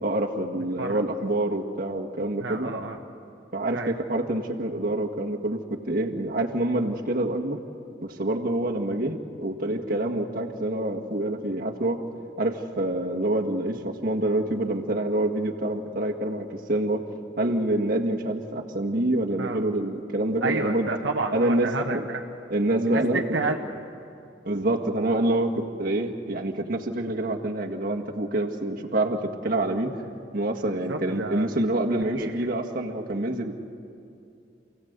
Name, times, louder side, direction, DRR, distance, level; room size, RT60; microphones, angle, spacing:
voice 1, 0.0-2.7 3.5-7.6 8.0-12.0 12.4-17.0 17.4-20.9 21.3-22.0 22.5-23.2 24.4-29.9 30.3-33.5, right 1 dB, 50° right, 0 dB, 1.8 m, -26 dB
voice 2, 2.4-3.0 3.7-3.9 19.4-19.6 20.4-22.2 22.9-23.8 30.7-31.5 32.1-32.4, right 3 dB, 80° right, 2 dB, 1.2 m, -30 dB
28.5 x 16.5 x 8.1 m, 2.5 s
head